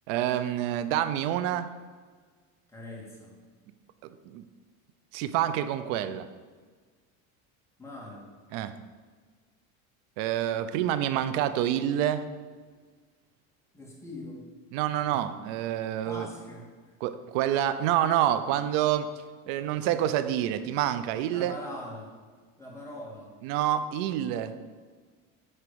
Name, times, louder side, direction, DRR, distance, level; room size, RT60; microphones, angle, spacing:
voice 1, 0.1-1.7 4.2-4.4 5.1-6.3 8.5-8.7 10.2-12.3 14.7-16.3 17.0-19.1 19.5-21.6 23.4-24.5, right 11 dB, 65° right, 12 dB, 0.8 m, -27 dB
voice 2, 2.7-3.4 7.8-8.3 13.7-14.4 16.0-16.7 21.3-22.1 22.6-23.3, left 1 dB, 5° left, -4 dB, 2.6 m, -42 dB
10.0 x 4.4 x 6.9 m, 1.5 s
supercardioid pair, 130°, 40 cm